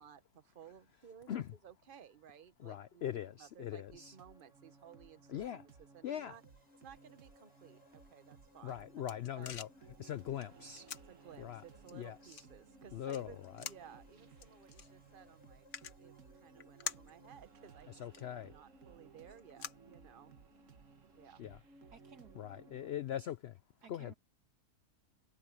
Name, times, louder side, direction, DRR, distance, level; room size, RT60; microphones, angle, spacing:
voice 1, 0.0-3.1 3.4-6.4 6.8-9.1 9.3-9.5 11.1-15.7 16.0-20.3 21.1-21.4, right 8 dB, 40° right, 1.1 m, -57 dB
voice 2, 2.6-4.1 5.3-5.6 6.0-6.4 8.6-9.7 10.0-10.9 11.4-11.6 11.9-12.4 12.9-13.7 17.9-18.5 21.4-21.6 22.4-23.5 23.9-24.1, left 10 dB, 80° left, 0.5 m, -41 dB
sound 1, 3.9-22.9, right 4 dB, 55° right, 1.6 m, -60 dB
sound 2, 6.3-18.1, left 2 dB, 15° left, 4.2 m, -70 dB
sound 3, 8.5-20.6, left 7 dB, 55° left, 1.3 m, -51 dB
voice 3, 21.9-22.4 23.8-24.1, right 6 dB, 80° right, 2.5 m, -57 dB
omnidirectional pair, 1.7 m